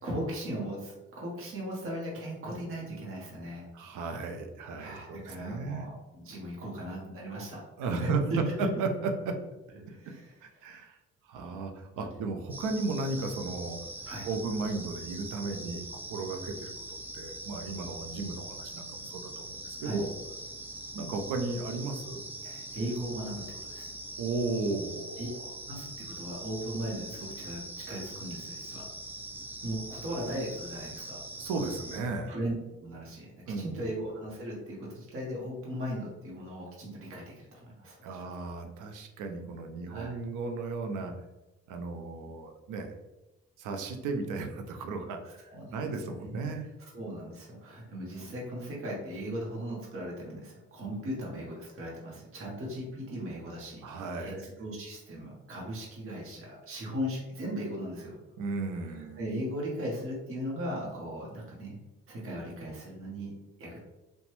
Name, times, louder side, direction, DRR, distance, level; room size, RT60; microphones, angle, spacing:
voice 1, 0.0-3.7 4.8-8.4 9.9-10.4 14.1-14.3 19.8-20.0 22.4-24.0 25.2-25.3 25.7-27.6 27.9-28.9 29.6-31.2 32.3-32.5 32.8-38.3 39.9-40.2 45.5-46.5 46.8-53.9 54.2-58.2 58.9-61.8 62.1-63.8, equal, 45° right, -4 dB, 0.9 m, -38 dB
voice 2, 3.7-5.9 7.8-8.2 8.6-9.4 10.4-11.0 11.2-13.8 14.2-20.1 20.9-22.2 24.2-25.4 31.4-32.4 33.5-33.9 38.0-41.1 41.7-42.9 43.6-46.7 53.8-54.4 58.4-59.2, right 3 dB, 85° right, 5 dB, 0.5 m, -35 dB
sound 1, 12.5-32.0, right 1 dB, 5° right, 0.3 m, -42 dB
2.9 x 2.2 x 3.0 m, 1.0 s
cardioid pair, 90°, 30 cm